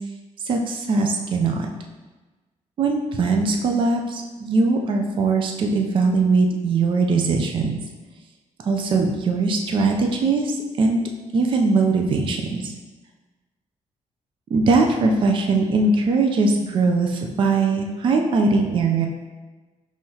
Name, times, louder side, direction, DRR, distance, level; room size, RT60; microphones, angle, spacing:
voice 1, 0.5-1.7 2.8-7.8 8.7-11.0 11.3-12.6 14.5-19.1, right 3 dB, 40° right, 2 dB, 0.4 m, -20 dB
5.5 x 3.1 x 2.8 m, 1.2 s
wide cardioid pair, 175°, 13 cm